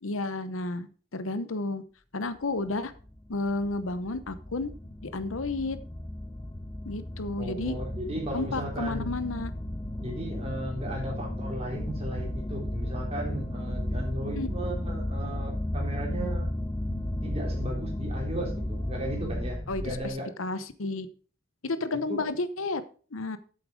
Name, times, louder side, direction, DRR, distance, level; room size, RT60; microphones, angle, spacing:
voice 1, 0.0-1.8 2.1-2.9 3.3-4.7 5.0-5.8 6.9-7.7 8.3-9.5 14.3-14.5 19.7-21.1 21.6-22.8 23.1-23.4, left 2 dB, 70° left, 13 dB, 0.9 m, -31 dB
sound 1, 2.6-20.1, left 1 dB, 15° left, 0.7 m, -34 dB
voice 2, 7.4-9.1 10.0-16.5 17.2-20.3 22.1-22.3, right 1 dB, 30° right, 0 dB, 3.6 m, -36 dB
8.4 x 7.7 x 5.0 m, 0.39 s
head